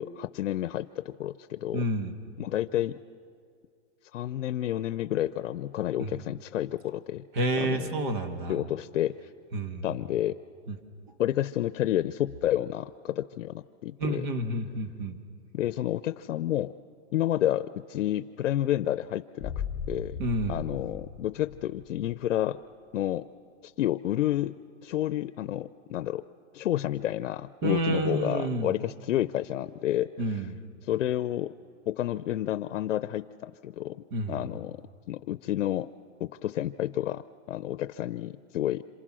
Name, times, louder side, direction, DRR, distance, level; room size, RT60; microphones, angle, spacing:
voice 1, 0.0-1.8 2.4-3.0 4.1-7.2 7.6-7.9 8.5-9.2 9.8-10.4 11.2-14.2 15.5-16.7 17.1-19.5 19.9-20.2 20.5-22.6 22.9-23.2 23.6-24.6 24.8-26.2 26.5-30.4 30.9-31.5 31.9-34.0 34.3-34.8 35.1-35.9 36.2-38.8, left 12 dB, 90° left, 13 dB, 0.7 m, -30 dB
voice 2, 1.7-2.1 6.0-6.1 7.3-8.6 9.5-10.0 10.7-10.8 14.0-15.2 20.2-20.6 27.6-28.7 30.2-30.6 34.1-34.4, right 1 dB, 40° right, 6 dB, 2.0 m, -29 dB
sound 1, 19.4-22.1 22.4-22.5, left 6 dB, 5° left, 2.0 m, -38 dB
27.5 x 26.5 x 6.2 m, 2.2 s
hypercardioid pair, 165°, 37 cm